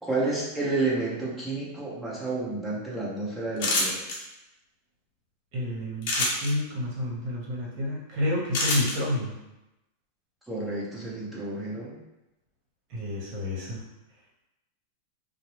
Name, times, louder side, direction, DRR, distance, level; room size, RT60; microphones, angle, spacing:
voice 1, 0.0-4.0 10.5-12.0, right 2 dB, 5° right, -7 dB, 0.9 m, -30 dB
sound 1, 3.6-4.2 6.0-6.5 8.5-8.9, left 2 dB, 65° left, 0.7 m, -25 dB
voice 2, 5.5-9.3 12.9-13.8, left 1 dB, 50° right, -4 dB, 1.1 m, -30 dB
2.5 x 2.0 x 3.1 m, 0.95 s
hypercardioid pair, 120°, 0 cm